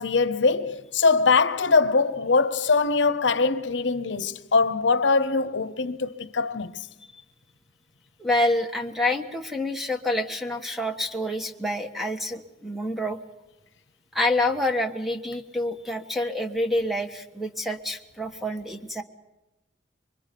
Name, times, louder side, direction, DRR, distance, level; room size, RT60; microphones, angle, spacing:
voice 1, 0.0-6.9, left 4 dB, 80° left, 0.9 m, -22 dB
voice 2, 8.2-13.2 14.1-19.0, left 1 dB, ahead, 1.3 m, -27 dB
25.5 x 24.0 x 5.3 m
head